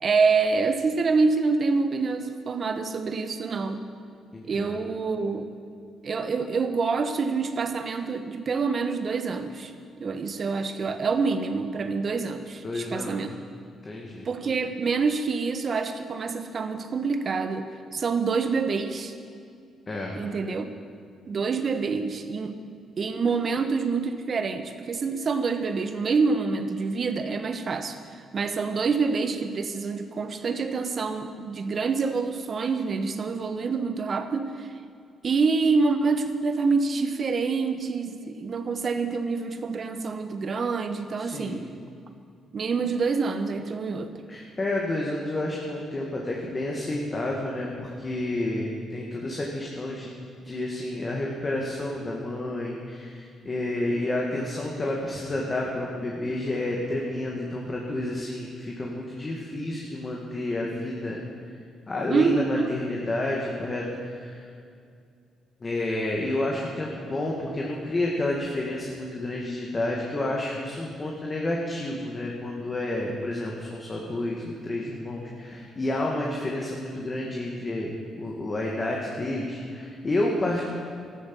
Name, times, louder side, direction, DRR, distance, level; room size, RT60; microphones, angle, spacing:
voice 1, 0.0-3.8 4.5-5.5 6.0-9.7 10.0-13.3 14.2-19.1 20.1-20.7 21.3-22.5 23.0-34.7 35.2-41.6 42.5-44.1 62.1-62.7, right 4 dB, 45° right, 9 dB, 1.2 m, -26 dB
voice 2, 4.3-4.8 12.6-13.2 13.8-14.3 19.9-20.1 41.2-41.7 44.3-50.1 50.4-61.2 61.9-64.5 65.6-77.9 78.2-80.7, left 1 dB, 30° left, -2 dB, 2.2 m, -30 dB
13.5 x 12.5 x 7.2 m, 2.3 s
cardioid pair, 90°, 0 cm